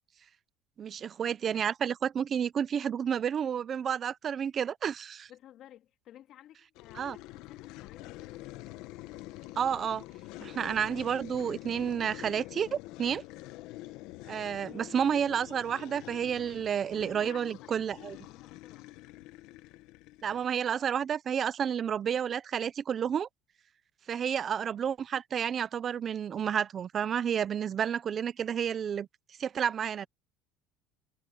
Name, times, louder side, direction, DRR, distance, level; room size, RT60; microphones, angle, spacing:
voice 1, 0.8-5.3 7.0-7.2 9.6-10.0 10.4-13.2 14.3-18.2 20.2-23.3 24.1-29.1 29.4-30.1, right 8 dB, 35° right, 0.7 m, -30 dB
voice 2, 5.3-8.4 14.4-15.0 17.0-18.9, left 12 dB, 50° left, 2.8 m, -55 dB
sound 1, 6.8-20.6, left 18 dB, 70° left, 1.1 m, -46 dB
cardioid pair, 140°, 0 cm